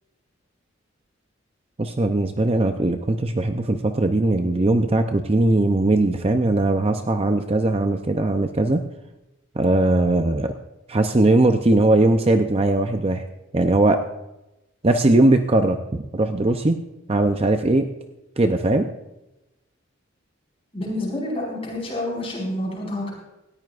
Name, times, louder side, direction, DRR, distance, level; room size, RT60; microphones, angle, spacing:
voice 1, 1.8-8.8 9.6-10.5 10.9-13.2 13.5-14.0 14.8-16.8 17.1-17.9 18.4-18.9, right 2 dB, 30° right, 6 dB, 0.6 m, -19 dB
voice 2, 20.7-23.1, left 1 dB, 30° left, -3 dB, 5.0 m, -28 dB
19.0 x 14.0 x 2.5 m, 0.94 s
head